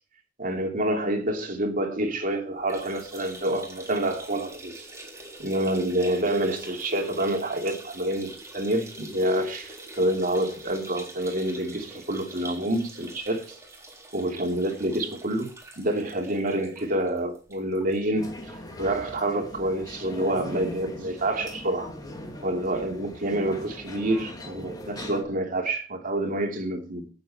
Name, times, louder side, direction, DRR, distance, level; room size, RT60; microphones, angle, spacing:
voice 1, 0.4-4.9 5.4-13.6 14.1-15.5 15.8-21.9 22.4-27.1, right 1 dB, 45° right, 3.0 m, -27 dB
sound 1, 2.6-18.0 18.3-18.4 18.8-18.9 19.9-20.0, right 2 dB, 15° right, 4.0 m, -44 dB
sound 2, 18.2-25.2, left 1 dB, 20° left, 3.0 m, -40 dB
18.5 x 7.9 x 4.4 m
head